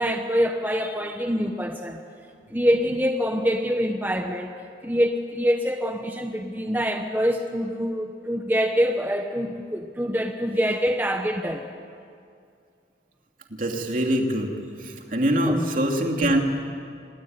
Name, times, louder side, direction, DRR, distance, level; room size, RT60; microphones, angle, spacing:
voice 1, 0.0-2.0 2.5-4.5 4.8-11.7 15.5-15.6, equal, 10° right, 4 dB, 1.0 m, -25 dB
voice 2, 13.5-14.5 14.8-16.4, right 1 dB, 50° right, 2 dB, 2.9 m, -24 dB
26.5 x 21.5 x 9.6 m, 2.4 s
head